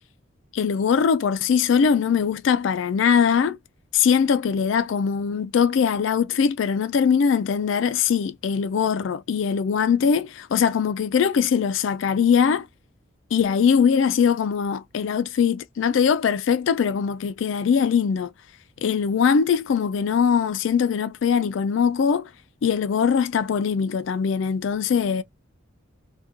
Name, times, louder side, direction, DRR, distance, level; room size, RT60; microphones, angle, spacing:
voice 1, 0.5-3.6 3.9-12.7 13.3-18.3 18.8-22.3 22.6-25.2, left 6 dB, 65° left, 0.3 m, -21 dB
2.9 x 2.3 x 3.4 m
head